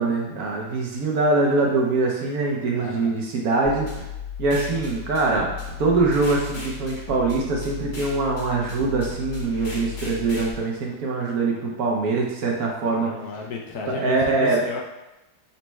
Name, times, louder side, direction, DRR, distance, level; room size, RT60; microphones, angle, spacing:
voice 1, 0.0-3.9 4.4-5.5 5.8-13.1 14.0-14.6, right 3 dB, 70° right, -1 dB, 1.0 m, -23 dB
voice 2, 2.7-3.2 12.9-14.8, left 4 dB, 70° left, -1 dB, 1.0 m, -33 dB
sound 1, 3.6-10.5, left 6 dB, 40° left, 0.7 m, -35 dB
4.1 x 2.1 x 4.4 m, 0.97 s
omnidirectional pair, 1.8 m